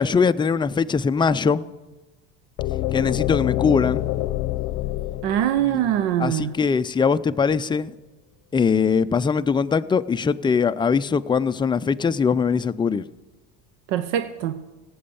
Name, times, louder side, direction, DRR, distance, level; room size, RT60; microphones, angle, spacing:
voice 1, 0.0-1.6 2.9-4.1 6.2-7.9 8.5-13.0, left 5 dB, 15° left, 0.4 m, -21 dB
sound 1, 2.6-6.5, left 15 dB, 60° left, 0.7 m, -26 dB
voice 2, 5.2-6.5 13.9-14.6, right 11 dB, 80° right, 0.8 m, -23 dB
17.0 x 7.8 x 7.1 m
supercardioid pair, 100°, 34 cm